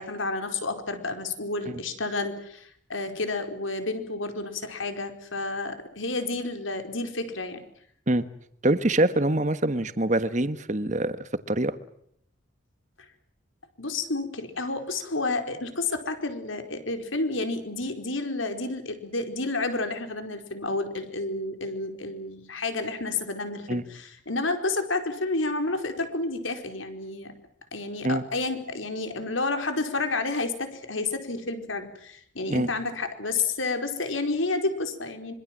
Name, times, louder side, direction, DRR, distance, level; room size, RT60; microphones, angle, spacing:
voice 1, 0.0-7.6 13.8-27.3 27.7-35.3, left 3 dB, 80° left, 4.8 m, -30 dB
voice 2, 8.6-11.2 11.5-11.8 23.7-23.8 28.0-28.2 32.5-32.7, right 1 dB, 35° right, 1.4 m, -24 dB
26.0 x 24.0 x 7.7 m
head